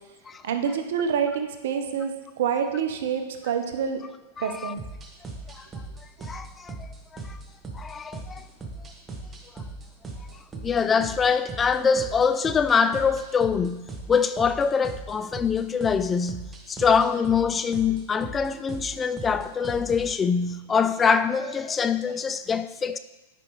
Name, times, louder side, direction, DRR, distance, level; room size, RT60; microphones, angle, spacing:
voice 1, 0.4-4.0 4.4-4.8, right 7 dB, 70° right, 0.8 m, -27 dB
voice 2, 4.4-4.7 5.6-5.7 6.2-6.9 7.3-7.4 7.7-8.4 10.6-23.0, left 6 dB, 20° left, 0.3 m, -24 dB
sound 1, 4.8-20.1, right 3 dB, 20° right, 1.1 m, -39 dB
9.6 x 5.2 x 3.2 m
hypercardioid pair, 110°, 0 cm